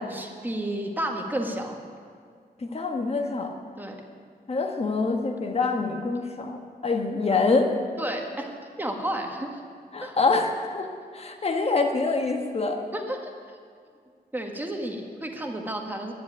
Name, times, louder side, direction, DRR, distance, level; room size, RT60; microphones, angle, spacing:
voice 1, 0.1-1.8 3.8-3.9 8.0-8.5 8.8-9.6 10.0-10.2 12.9-13.3 14.3-16.1, right 1 dB, 10° right, 2 dB, 1.6 m, -31 dB
voice 2, 2.6-3.5 4.5-7.7 9.9-10.9 11.1-12.8, left 3 dB, 35° left, 3 dB, 1.4 m, -25 dB
10.5 x 10.5 x 10.0 m, 2.1 s
wide cardioid pair, 160°, 17 cm